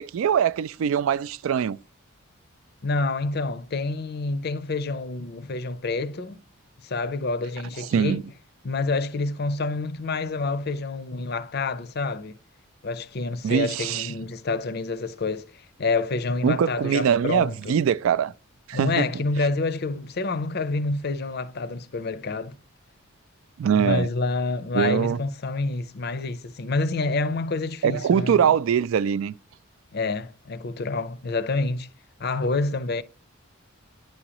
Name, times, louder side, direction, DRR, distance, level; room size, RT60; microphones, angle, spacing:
voice 1, 0.0-1.8 7.8-8.2 13.4-14.1 16.4-18.3 18.7-19.1 23.6-24.1 24.7-25.2 27.8-29.3, right 8 dB, 70° right, 0.3 m, -22 dB
voice 2, 2.8-6.4 6.8-8.2 8.6-12.4 12.8-17.7 18.7-22.6 23.7-28.5 29.9-31.9 32.2-33.0, left 3 dB, 50° left, 0.5 m, -28 dB
10.5 x 4.9 x 2.9 m
head